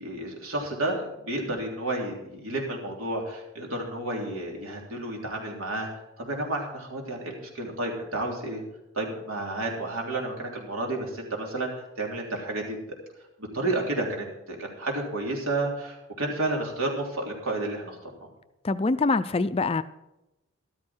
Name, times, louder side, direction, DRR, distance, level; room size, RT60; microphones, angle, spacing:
voice 1, 0.0-5.9 6.2-8.6 9.0-11.7 12.0-12.8 13.5-18.1, right 2 dB, 80° right, 0 dB, 3.5 m, -31 dB
voice 2, 18.6-19.8, left 3 dB, 25° left, 13 dB, 0.4 m, -24 dB
13.5 x 12.5 x 4.5 m, 0.92 s
head